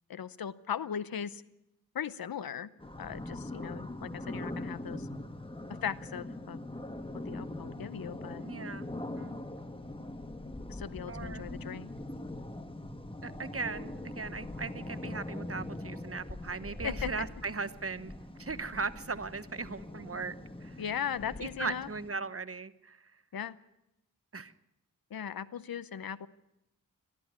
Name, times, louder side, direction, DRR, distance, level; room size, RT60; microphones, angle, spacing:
voice 1, 0.1-1.4 1.9-2.7 3.0-5.1 5.8-6.6 7.2-8.4 10.7-11.9 16.8-17.1 20.8-21.9 23.3-23.6 25.1-26.3, left 8 dB, 85° left, 17 dB, 0.8 m, -38 dB
sound 1, 2.8-22.1, left 1 dB, 15° left, 1.5 m, -42 dB
voice 2, 8.4-8.9 9.1-9.4 11.1-11.5 13.2-18.1 18.4-20.3 20.6-20.8 21.6-23.1 24.3-24.5, right 4 dB, 40° right, 13 dB, 1.1 m, -38 dB
21.0 x 14.0 x 9.5 m, 0.87 s
cardioid pair, 45°, 35 cm